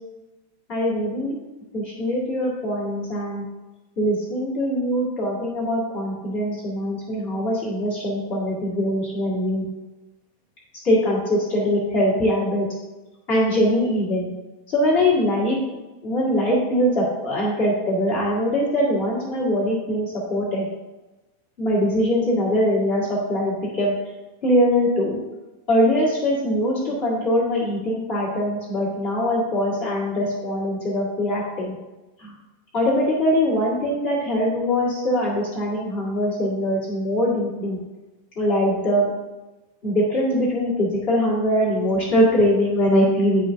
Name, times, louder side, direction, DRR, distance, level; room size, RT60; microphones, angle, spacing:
voice 1, 0.7-1.4 1.7-3.4 4.0-9.6 10.8-12.7 13.3-14.3 14.7-20.7 21.6-23.9 24.4-25.2 25.7-31.8 32.2-32.3 32.7-37.8 38.3-39.1 39.8-43.5, equal, 35° left, -8 dB, 0.9 m, -22 dB
10.0 x 5.0 x 2.7 m, 1.1 s
omnidirectional pair, 4.2 m